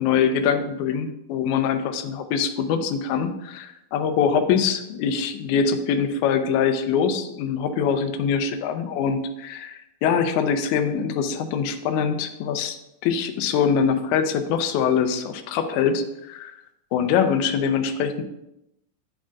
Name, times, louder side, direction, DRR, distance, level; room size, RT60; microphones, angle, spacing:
voice 1, 0.0-12.8 13.0-16.5 16.9-18.2, left 7 dB, 80° left, 7 dB, 1.9 m, -23 dB
9.4 x 6.3 x 2.5 m, 0.85 s
omnidirectional pair, 3.8 m